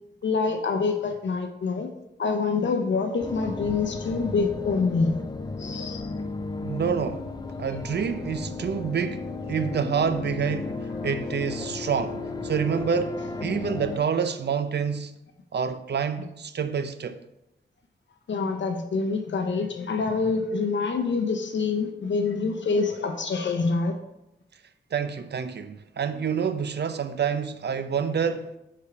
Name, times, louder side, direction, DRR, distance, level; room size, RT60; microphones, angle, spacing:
voice 1, 0.2-1.9 2.2-5.2 5.6-6.1 18.3-24.0, left 4 dB, 80° left, 0.7 m, -26 dB
sound 1, 3.2-14.0, left 3 dB, 20° left, 0.5 m, -34 dB
voice 2, 6.6-7.3 7.6-15.1 15.5-17.2 24.9-28.5, right 6 dB, 65° right, 0.5 m, -28 dB
8.2 x 3.5 x 4.7 m
wide cardioid pair, 115°, 19 cm